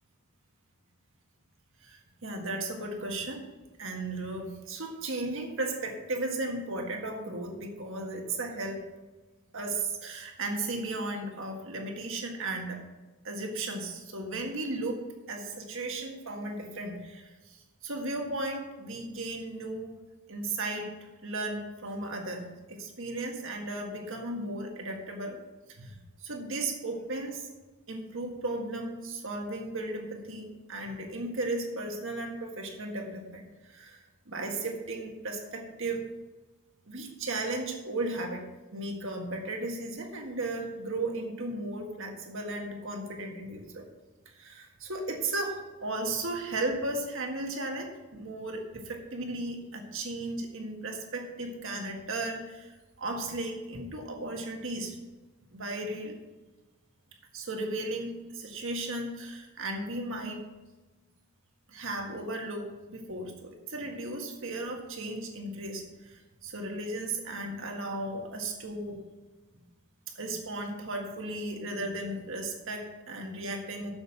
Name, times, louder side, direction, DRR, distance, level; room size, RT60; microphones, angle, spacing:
voice 1, 1.8-3.4 3.8-8.9 9.5-12.8 13.2-15.0 15.3-17.6 17.8-19.9 20.3-20.9 21.2-25.4 25.7-26.0 26.2-27.5 27.9-36.1 36.9-38.4 38.7-43.8 44.2-55.0 55.5-56.1 57.3-60.4 61.7-69.0 70.1-73.9, right 2 dB, 60° right, 2 dB, 1.7 m, -35 dB
8.0 x 7.1 x 6.1 m, 1.2 s
head